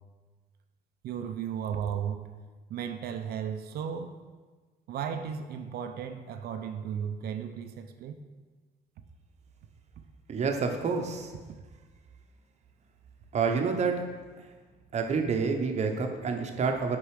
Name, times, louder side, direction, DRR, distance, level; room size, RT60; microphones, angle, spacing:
voice 1, 1.0-2.3 2.7-4.2 4.9-8.2, right 8 dB, 65° right, 7 dB, 0.6 m, -35 dB
voice 2, 10.3-11.3 13.3-14.1 14.9-17.0, right 5 dB, 40° right, 4 dB, 0.9 m, -28 dB
6.6 x 5.3 x 4.9 m, 1.4 s
cardioid pair, 110°, 17 cm